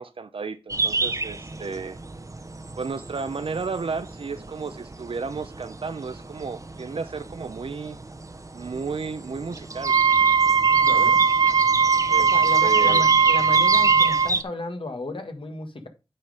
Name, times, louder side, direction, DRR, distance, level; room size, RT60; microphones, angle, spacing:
voice 1, 0.0-2.0 2.8-8.0 8.5-9.9 10.9-11.1 12.1-12.3 12.6-13.0, right 4 dB, 80° right, 0.8 m, -33 dB
sound 1, 0.7-14.4, right 3 dB, 35° right, 0.8 m, -31 dB
Wind instrument woodwind instrument, 9.8-14.3, right 6 dB, 60° right, 0.4 m, -19 dB
voice 2, 10.8-11.2 12.3-15.9, left 2 dB, 70° left, 1.6 m, -34 dB
9.0 x 4.3 x 4.9 m
wide cardioid pair, 50°, 9 cm